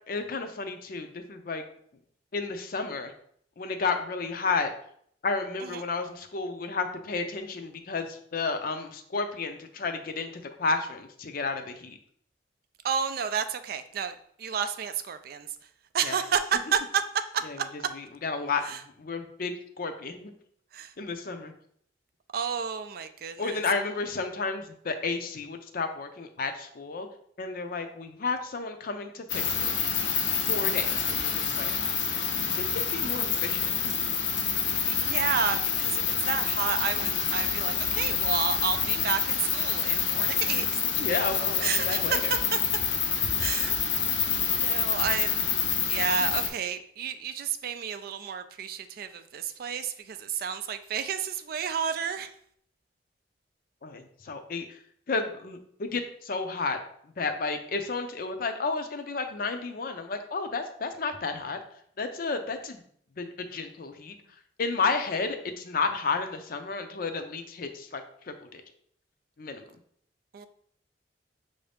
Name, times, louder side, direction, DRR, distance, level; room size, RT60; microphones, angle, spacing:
voice 1, 0.1-1.6 2.3-3.1 3.6-4.7 5.2-12.0 16.0-16.2 17.4-17.6 17.9-20.3 21.0-21.5 23.4-27.1 27.4-29.7 30.2-31.7 32.6-33.7 40.8-42.3 53.8-54.8 55.1-56.8 57.2-61.6 62.0-62.8 63.2-64.1 64.6-68.0 68.3-68.6 69.4-69.6, left 4 dB, 55° left, 7 dB, 0.5 m, -32 dB
voice 2, 12.8-15.5 15.9-17.0 17.3-17.7 18.6-18.8 20.7-20.9 22.3-23.6 34.6-40.8 41.6-42.6 43.4-43.8 44.3-52.3 70.3-70.5, right 7 dB, 55° right, 10 dB, 0.3 m, -31 dB
sound 1, 29.3-46.5, left 6 dB, 85° left, 0.7 m, -27 dB
5.6 x 2.6 x 3.4 m, 0.65 s
head